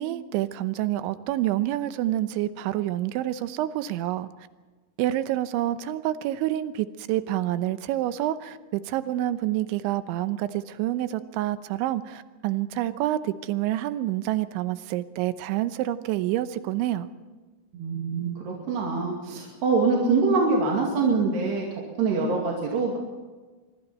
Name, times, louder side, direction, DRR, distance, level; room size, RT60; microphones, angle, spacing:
voice 1, 0.0-4.5 5.0-17.1, right 14 dB, 90° right, 12 dB, 3.2 m, -28 dB
voice 2, 17.7-23.0, right 4 dB, 65° right, -2 dB, 4.4 m, -24 dB
25.0 x 24.0 x 4.4 m, 1.3 s
omnidirectional pair, 5.2 m